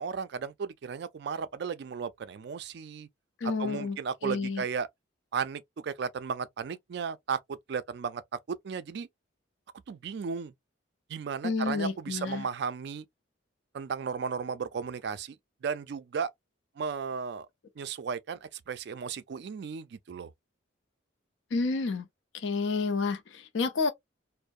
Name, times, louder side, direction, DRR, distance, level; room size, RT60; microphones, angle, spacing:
voice 1, 0.0-3.1 3.4-4.9 5.3-8.2 8.5-9.1 9.9-10.5 11.1-13.1 13.7-16.3 16.8-17.5 17.8-20.3, right 6 dB, 55° right, 0.3 m, -35 dB
voice 2, 3.4-4.0 4.2-4.6 11.4-12.4 21.5-22.1 22.3-23.9, left 4 dB, 65° left, 0.5 m, -30 dB
2.6 x 2.0 x 2.3 m
head